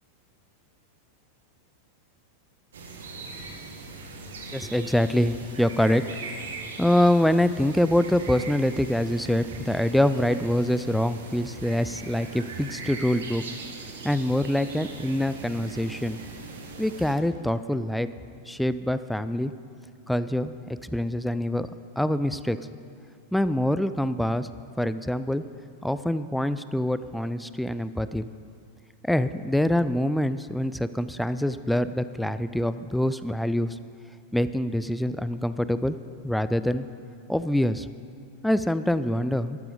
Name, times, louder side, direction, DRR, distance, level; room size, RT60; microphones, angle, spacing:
sound 1, 2.7-17.1, right 3 dB, 65° right, 1.6 m, -40 dB
voice 1, 4.5-6.4 6.8-13.4 14.0-16.2 16.8-18.1 18.5-19.5 20.1-20.6 20.8-21.7 22.0-22.6 23.3-24.5 24.8-25.4 25.8-28.3 29.0-33.8 34.3-36.0 36.2-36.9 37.3-37.9 38.4-39.6, left 1 dB, ahead, 13 dB, 0.4 m, -25 dB
13.0 x 12.0 x 5.1 m, 2.3 s
figure-of-eight pair, 90°, 0 cm